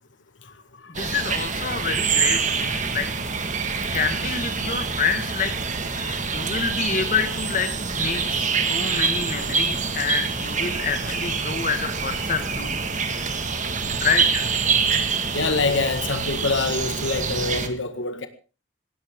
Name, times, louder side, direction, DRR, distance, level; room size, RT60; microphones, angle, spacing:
voice 1, 0.9-3.1 3.9-5.5 5.9-12.8 13.1-13.3 14.0-14.5, left 5 dB, 40° left, 1.8 m, -28 dB
sound 1, 0.9-17.7, right 5 dB, 40° right, 1.8 m, -26 dB
voice 2, 15.3-18.3, left 3 dB, 75° left, 1.7 m, -25 dB
19.5 x 17.0 x 3.8 m
head